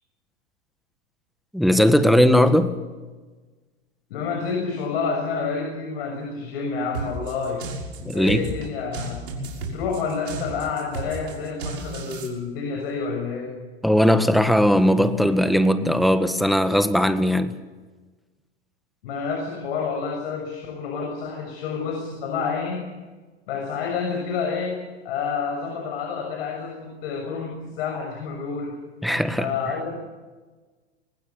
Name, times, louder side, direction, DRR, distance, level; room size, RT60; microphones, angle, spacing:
voice 1, 1.5-2.7 8.0-8.4 13.8-17.5 29.0-29.5, equal, ahead, 10 dB, 1.7 m, -18 dB
voice 2, 4.1-7.6 8.0-9.2 9.6-13.5 19.0-22.8 23.5-28.8 29.4-30.0, left 5 dB, 65° left, 2 dB, 6.6 m, -29 dB
sound 1, 6.9-12.3, right 3 dB, 75° right, 6.3 m, -33 dB
24.5 x 20.0 x 7.3 m, 1.3 s
hypercardioid pair, 100°, 32 cm